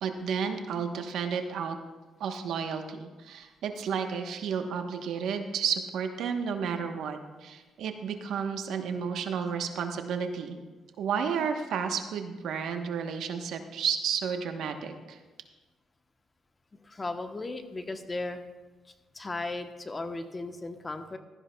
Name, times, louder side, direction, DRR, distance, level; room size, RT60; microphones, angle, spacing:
voice 1, 0.0-1.8 2.2-10.6 11.0-15.2, right 6 dB, 75° right, 5 dB, 1.0 m, -32 dB
voice 2, 16.8-18.4 19.1-21.2, left 2 dB, 25° left, 7 dB, 0.9 m, -36 dB
15.5 x 13.0 x 2.3 m, 1.2 s
cardioid pair, 90°, 0 cm